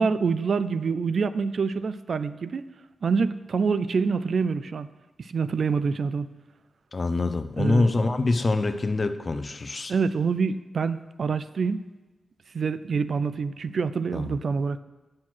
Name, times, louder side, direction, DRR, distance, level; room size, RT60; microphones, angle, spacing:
voice 1, 0.0-2.6 3.0-4.9 5.2-6.3 7.6-7.9 9.9-11.8 12.5-14.8, right 5 dB, 65° right, 14 dB, 0.4 m, -26 dB
voice 2, 6.9-9.9 14.1-14.3, left 3 dB, 45° left, 10 dB, 0.6 m, -25 dB
7.5 x 6.3 x 6.1 m, 1.1 s
cardioid pair, 55°, 0 cm